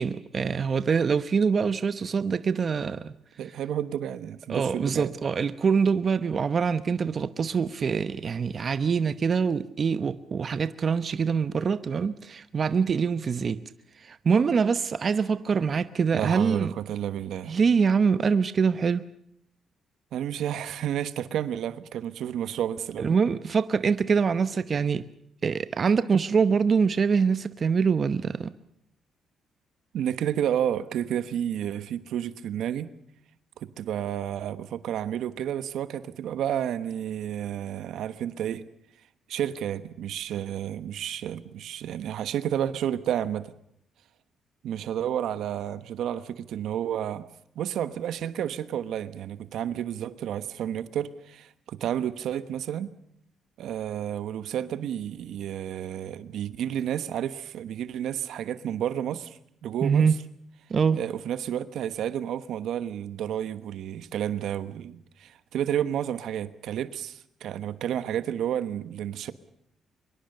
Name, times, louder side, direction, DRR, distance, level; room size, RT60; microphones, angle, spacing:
voice 1, 0.0-3.1 4.5-13.6 14.0-16.7 17.5-19.0 23.0-25.0 25.4-28.5 59.8-60.1 60.7-61.0, right 5 dB, 45° right, 0.8 m, -24 dB
voice 2, 3.4-5.1 16.1-17.5 20.1-23.1 29.9-32.9 33.6-38.6 39.3-43.5 44.6-47.3 47.5-52.9 53.6-60.0 60.9-69.3, right 10 dB, 75° right, 1.2 m, -31 dB
24.0 x 23.0 x 6.7 m
cardioid pair, 90°, 0 cm